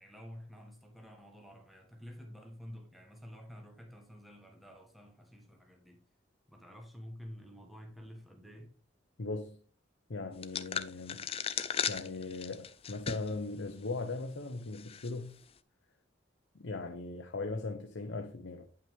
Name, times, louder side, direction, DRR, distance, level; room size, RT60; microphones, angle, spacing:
voice 1, 0.0-6.1 6.5-8.7, equal, ahead, 1.2 m, -50 dB
voice 2, 9.2-9.6 10.1-11.3 11.8-15.4 16.6-18.7, left 3 dB, 75° left, 0.8 m, -39 dB
sound 1, 10.4-13.4 13.8-13.9 14.7-15.1, left 7 dB, 30° left, 0.5 m, -36 dB
9.3 x 5.7 x 3.5 m
head